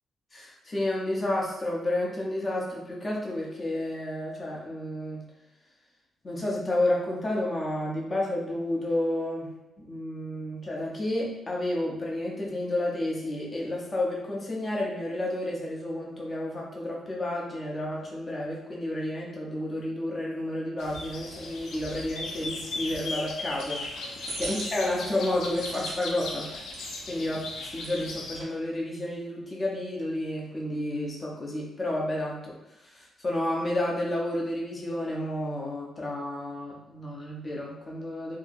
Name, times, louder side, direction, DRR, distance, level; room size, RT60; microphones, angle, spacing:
voice 1, 0.3-5.2 6.2-9.5 9.8-23.8 24.4-26.5 27.1-27.4 27.7-32.5 32.9-38.4, left 1 dB, 25° left, -3 dB, 0.6 m, -31 dB
sound 1, 20.8-28.4, left 2 dB, 80° left, 0.5 m, -37 dB
sound 2, 23.4-27.0 27.3-28.5, right 2 dB, 85° right, 0.7 m, -43 dB
2.7 x 2.6 x 2.5 m, 0.94 s
cardioid pair, 155°, 0 cm